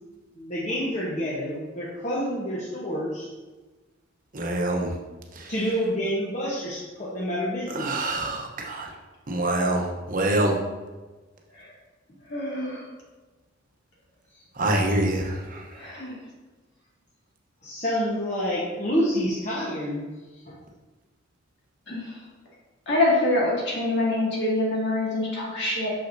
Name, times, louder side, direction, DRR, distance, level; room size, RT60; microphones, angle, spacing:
voice 1, 0.4-3.3 5.5-8.1 17.6-20.0 20.5-20.6, equal, 40° left, -7 dB, 1.0 m, -28 dB
voice 2, 4.3-4.9 7.8-8.9 9.3-9.8 10.1-10.5 14.6-15.2, right 1 dB, 45° right, 1 dB, 0.9 m, -24 dB
voice 3, 12.3-12.9 15.7-16.2 21.9-22.1 22.9-25.9, left 2 dB, 65° left, -5 dB, 1.9 m, -25 dB
6.1 x 6.1 x 2.6 m, 1.2 s
head